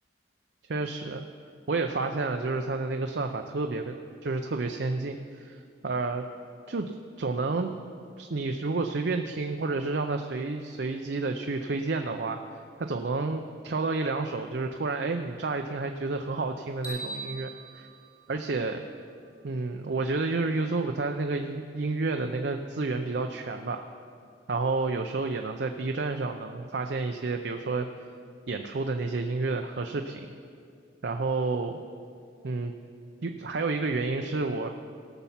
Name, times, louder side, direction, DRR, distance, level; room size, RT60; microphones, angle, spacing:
voice 1, 0.7-1.3 1.7-3.9 4.2-6.3 6.7-6.9 7.2-7.7 8.2-12.4 12.8-17.9 18.3-18.8 19.4-23.8 24.5-27.9 28.5-30.3 31.0-31.8 32.4-32.7 33.2-34.7, right 3 dB, 65° right, 5 dB, 0.6 m, -30 dB
sound 1, 16.8-19.1, right 2 dB, 50° left, 3.5 m, -41 dB
17.5 x 7.0 x 5.7 m, 2.3 s
head